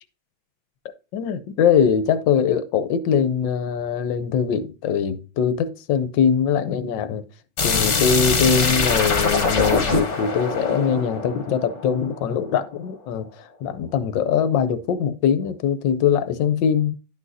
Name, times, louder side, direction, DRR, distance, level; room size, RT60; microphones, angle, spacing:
voice 1, 1.1-7.2 7.6-16.9, left 7 dB, 70° left, 1.2 m, -22 dB
sound 1, 7.6-12.3, left 4 dB, 40° left, 1.3 m, -22 dB
11.0 x 6.2 x 2.7 m
omnidirectional pair, 2.3 m